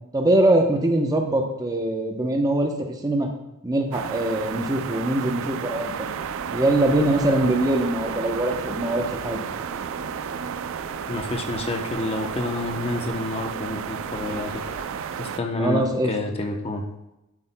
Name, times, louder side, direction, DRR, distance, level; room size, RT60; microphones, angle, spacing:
voice 1, 0.1-2.7 3.0-3.3 3.6-6.1 6.5-9.4 15.6-16.1, right 1 dB, 15° right, 3 dB, 0.7 m, -22 dB
sound 1, 3.9-15.4, right 7 dB, 65° right, 0.4 m, -32 dB
sound 2, 5.7-14.8, right 1 dB, 85° right, 2.2 m, -41 dB
voice 2, 11.1-14.6 15.2-16.9, left 2 dB, 25° left, 3 dB, 0.7 m, -29 dB
11.0 x 8.3 x 2.2 m, 0.95 s
head